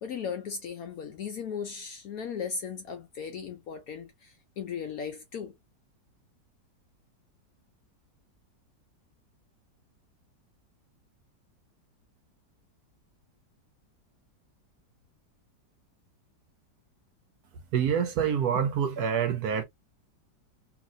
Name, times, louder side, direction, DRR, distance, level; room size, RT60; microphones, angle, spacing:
voice 1, 0.0-5.5, left 6 dB, 70° left, 0.9 m, -37 dB
voice 2, 17.7-19.6, right 8 dB, 70° right, 1.0 m, -26 dB
3.0 x 2.6 x 2.5 m
omnidirectional pair, 2.0 m